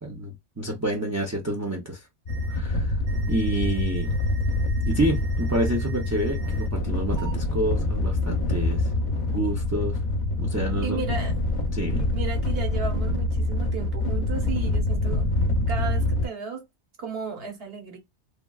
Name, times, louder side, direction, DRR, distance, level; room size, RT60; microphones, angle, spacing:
voice 1, 0.0-2.0 2.5-3.0 3.3-4.1 4.9-8.9 9.3-10.0 10.4-11.0 11.7-12.0, right 1 dB, 20° right, 0.4 m, -28 dB
sound 1, 2.3-16.3, left 2 dB, 50° left, 0.7 m, -26 dB
sound 2, 2.3-2.6 3.1-6.7 7.2-7.3, right 6 dB, 80° right, 1.2 m, -45 dB
voice 2, 10.8-11.3 12.0-15.3 15.7-16.7 17.0-18.0, right 5 dB, 60° right, 1.1 m, -34 dB
3.0 x 2.3 x 2.3 m
omnidirectional pair, 1.2 m